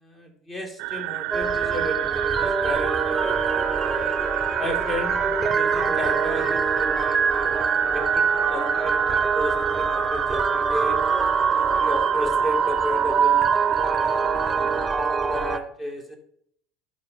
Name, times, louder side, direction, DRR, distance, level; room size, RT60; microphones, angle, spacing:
voice 1, 0.0-3.0 3.5-4.2 4.6-7.2 7.8-11.0 11.5-13.5 13.8-14.5 15.3-16.2, equal, 25° left, 4 dB, 2.0 m, -34 dB
sound 1, 0.8-14.9, right 19 dB, 60° right, 0.3 m, -31 dB
sound 2, 1.3-15.6, right 5 dB, 20° right, 0.8 m, -23 dB
11.5 x 5.4 x 3.7 m, 0.66 s
hypercardioid pair, 70°, 0 cm